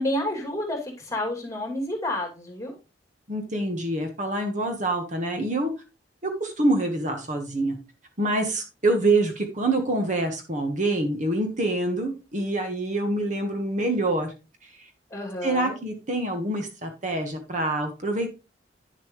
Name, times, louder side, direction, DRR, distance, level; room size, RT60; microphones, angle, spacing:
voice 1, 0.0-2.7 15.1-15.7, left 1 dB, 15° left, 1 dB, 2.7 m, -29 dB
voice 2, 3.3-5.7 6.2-7.8 8.2-14.3 14.6-14.9 15.4-18.3, right 2 dB, 45° right, 5 dB, 1.4 m, -26 dB
9.9 x 7.1 x 3.2 m, 0.28 s
head